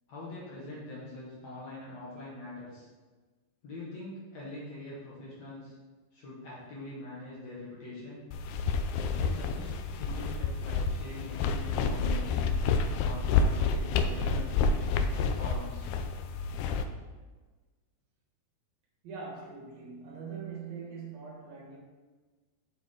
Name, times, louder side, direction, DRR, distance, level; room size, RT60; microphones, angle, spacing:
voice 1, 0.1-2.9 3.6-5.7 6.1-8.2 9.2-12.6 13.0-15.9, left 2 dB, 55° left, -7 dB, 2.4 m, -43 dB
sound 1, 8.3-16.8, left 4 dB, 85° left, 2.0 m, -29 dB
voice 2, 19.0-21.8, right 5 dB, 70° right, -2 dB, 2.9 m, -42 dB
7.2 x 6.7 x 3.8 m, 1.3 s
omnidirectional pair, 4.5 m